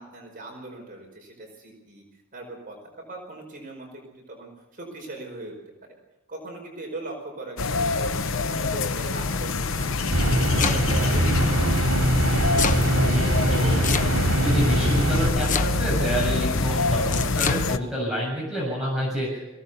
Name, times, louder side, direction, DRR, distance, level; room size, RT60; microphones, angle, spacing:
voice 1, 0.0-2.0 2.3-5.5 6.3-8.1 8.5-11.8, right 2 dB, 40° right, 0 dB, 5.2 m, -39 dB
sound 1, 7.6-17.8, left 3 dB, 65° left, 0.9 m, -26 dB
sound 2, 10.1-15.3, right 1 dB, 85° right, 2.6 m, -22 dB
Domestic sounds home sounds, 10.2-11.1 12.1-12.8 13.8-14.4 15.4-16.0 17.1-17.6, left 6 dB, 40° left, 1.0 m, -28 dB
voice 2, 13.5-14.1 14.4-19.4, equal, 5° right, -5 dB, 7.3 m, -28 dB
22.0 x 17.0 x 6.9 m, 1.0 s
head